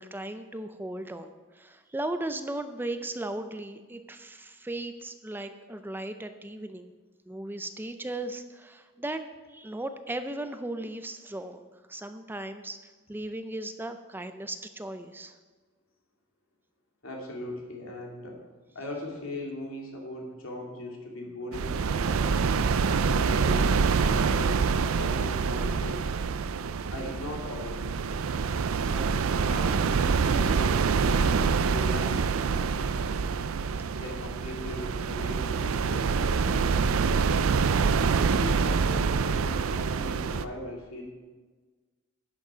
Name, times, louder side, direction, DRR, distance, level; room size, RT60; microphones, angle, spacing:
voice 1, 0.0-6.9 7.3-9.2 9.5-15.4, right 1 dB, 10° right, 8 dB, 0.5 m, -37 dB
voice 2, 17.0-18.4 18.7-22.5 23.0-26.2 26.9-28.0 28.8-33.5 33.9-37.5 38.1-41.0, left 1 dB, 80° left, -1 dB, 2.7 m, -39 dB
sound 1, 21.5-40.5, right 5 dB, 85° right, 0.5 m, -26 dB
11.5 x 9.0 x 5.1 m, 1.4 s
head